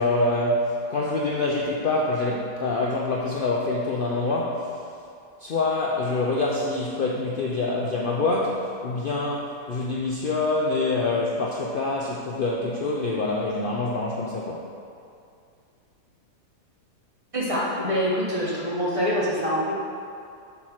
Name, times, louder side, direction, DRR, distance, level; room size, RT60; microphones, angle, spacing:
voice 1, 0.0-4.8 5.4-14.7, left 2 dB, 70° left, -3 dB, 0.5 m, -25 dB
voice 2, 17.3-19.7, equal, 20° right, -7 dB, 1.2 m, -25 dB
7.3 x 3.6 x 6.3 m, 2.5 s
omnidirectional pair, 1.7 m